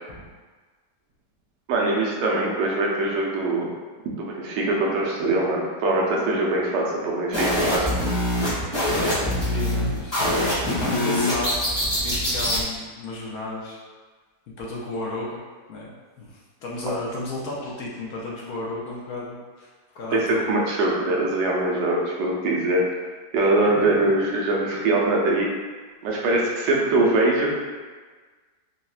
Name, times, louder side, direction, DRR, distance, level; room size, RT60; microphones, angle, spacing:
voice 1, 1.7-3.7 4.0-7.9 16.8-16.9 20.1-22.8 23.3-25.5 26.0-27.5, right 2 dB, 90° right, -2 dB, 1.3 m, -22 dB
sound 1, 7.3-12.6, left 1 dB, 25° left, 0.6 m, -24 dB
voice 2, 9.0-10.3 10.8-11.6 12.0-13.8 14.6-15.4 15.7-20.5, left 2 dB, 70° left, -4 dB, 1.0 m, -33 dB
3.9 x 2.1 x 2.3 m, 1.4 s
omnidirectional pair, 1.9 m